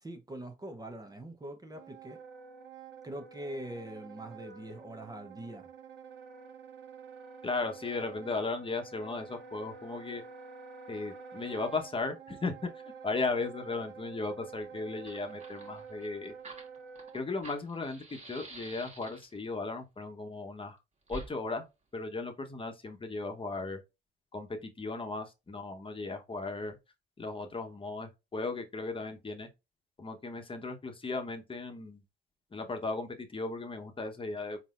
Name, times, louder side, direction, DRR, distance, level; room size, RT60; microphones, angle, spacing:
voice 1, 0.0-2.2 3.0-5.7, right 1 dB, 20° right, 0.8 m, -43 dB
Wind instrument woodwind instrument, 1.7-17.2, right 6 dB, 65° right, 0.9 m, -49 dB
voice 2, 7.4-10.2 10.9-12.5 13.0-16.3 17.1-20.8 21.1-21.7 21.9-23.8 24.3-26.8 27.2-29.5 30.0-32.0 32.5-34.6, left 3 dB, 25° left, 1.0 m, -36 dB
Fire, 14.6-14.7 14.9-19.5 21.1-21.3, right 2 dB, 35° right, 1.6 m, -48 dB
4.4 x 3.9 x 2.5 m
cardioid pair, 90°, 20 cm